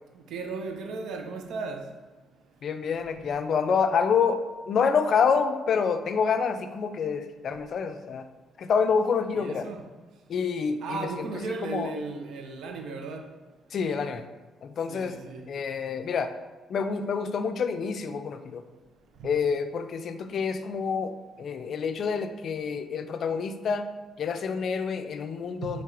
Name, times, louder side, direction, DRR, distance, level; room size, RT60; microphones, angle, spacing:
voice 1, 0.3-1.8 9.3-9.8 10.8-13.2 14.9-15.4 25.6-25.8, right 4 dB, 75° right, 0.6 m, -35 dB
voice 2, 2.6-8.3 8.6-9.7 10.3-11.9 13.7-14.2 14.6-15.2 15.5-16.3 16.7-18.6 19.2-21.1 21.4-23.9 24.2-25.8, left 6 dB, 60° left, 0.4 m, -27 dB
4.3 x 3.2 x 3.8 m
cardioid pair, 90°, 0 cm